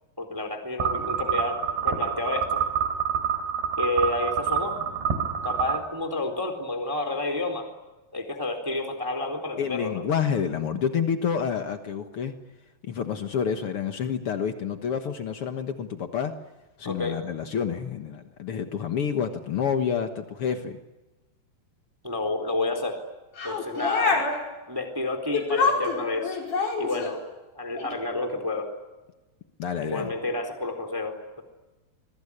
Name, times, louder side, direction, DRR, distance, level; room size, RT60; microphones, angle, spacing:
voice 1, 0.2-2.6 3.8-4.8 5.4-7.7 8.1-10.0 16.8-17.1 22.0-23.0 23.4-24.2 24.7-26.4 26.8-27.2 27.5-28.7 29.8-31.4, left 2 dB, 5° right, 5 dB, 3.1 m, -30 dB
sound 1, 0.8-5.8, right 7 dB, 70° right, 5.2 m, -27 dB
voice 2, 9.6-12.3 12.8-16.3 16.8-20.8 29.6-30.1, left 7 dB, 85° left, 6 dB, 1.2 m, -28 dB
sound 2, 23.4-24.4 25.3-27.2 27.8-27.9, left 4 dB, 50° left, 6.5 m, -26 dB
27.0 x 22.0 x 9.9 m, 1.1 s
omnidirectional pair, 4.8 m